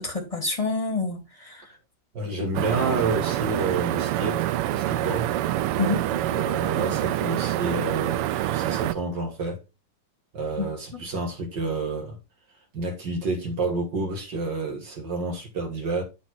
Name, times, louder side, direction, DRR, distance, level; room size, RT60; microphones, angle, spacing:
voice 1, 0.0-1.7 5.8-6.0 10.6-11.0, left 3 dB, 15° left, 2.3 m, -28 dB
voice 2, 2.1-5.3 6.1-9.6 10.3-12.2 12.7-16.0, right 3 dB, 55° right, 2.2 m, -29 dB
sound 1, 2.5-8.9, right 13 dB, 85° right, 1.5 m, -26 dB
11.0 x 4.2 x 4.4 m
omnidirectional pair, 2.4 m